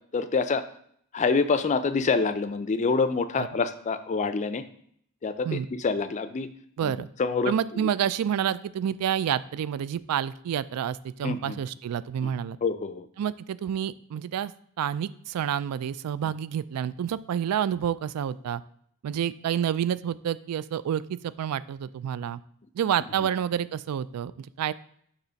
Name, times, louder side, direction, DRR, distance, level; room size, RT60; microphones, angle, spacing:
voice 1, 0.1-0.6 1.1-4.6 5.2-6.5 6.8-6.9 7.2-7.9 11.2-11.6 12.2-12.3 12.6-13.1, left 4 dB, 30° left, 11 dB, 0.4 m, -26 dB
voice 2, 6.8-7.1 7.4-12.6 13.2-14.5 14.8-18.6 19.0-22.4 22.7-24.7, right 9 dB, 85° right, 18 dB, 0.3 m, -29 dB
6.7 x 3.0 x 5.7 m, 0.65 s
head